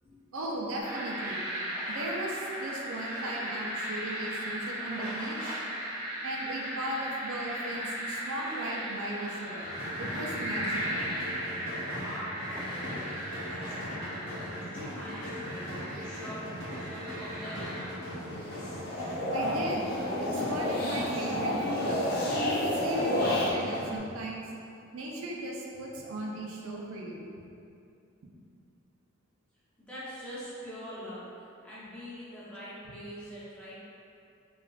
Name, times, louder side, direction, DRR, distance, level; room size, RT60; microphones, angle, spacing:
voice 1, 0.3-1.5 1.9-5.6 6.2-11.1 19.3-19.9 20.2-22.3 22.6-24.5 24.9-27.3 28.2-28.3, right 1 dB, 85° right, -2 dB, 0.4 m, -37 dB
sound 1, 0.8-17.9, equal, 25° right, 0.9 m, -37 dB
sound 2, 9.6-24.0, equal, 70° left, 0.8 m, -40 dB
voice 2, 11.9-16.4 16.9-17.7 29.9-31.2 31.6-33.8, equal, 5° left, -10 dB, 0.6 m, -44 dB
sound 3, 18.3-23.5, left 1 dB, 45° left, 0.3 m, -30 dB
3.5 x 2.4 x 2.3 m, 2.6 s
head